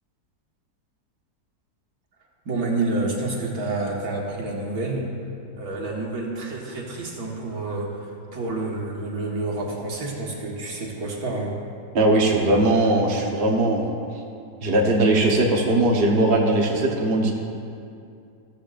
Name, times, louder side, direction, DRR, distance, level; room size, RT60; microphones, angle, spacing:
voice 1, 2.5-5.0 5.6-11.6, right 2 dB, 70° right, -2 dB, 2.0 m, -28 dB
voice 2, 11.9-13.8 14.6-17.3, right 2 dB, 40° right, -1 dB, 1.2 m, -19 dB
15.0 x 14.0 x 2.5 m, 2.5 s
omnidirectional pair, 1.7 m